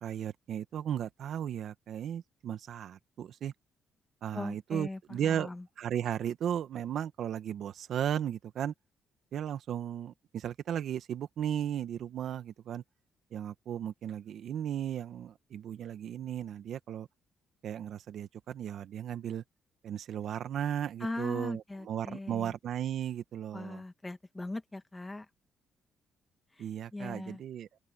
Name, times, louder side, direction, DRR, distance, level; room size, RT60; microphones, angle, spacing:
voice 1, 0.0-3.5 4.2-5.5 5.8-8.7 9.3-12.8 13.3-17.1 17.6-19.4 19.8-23.8 26.6-27.7, right 9 dB, 70° right, 1.4 m, -35 dB
voice 2, 4.3-5.7 21.0-22.5 23.5-25.3 26.5-27.4, left 2 dB, 15° left, 1.9 m, -40 dB
open air
cardioid pair, 90°, 0 cm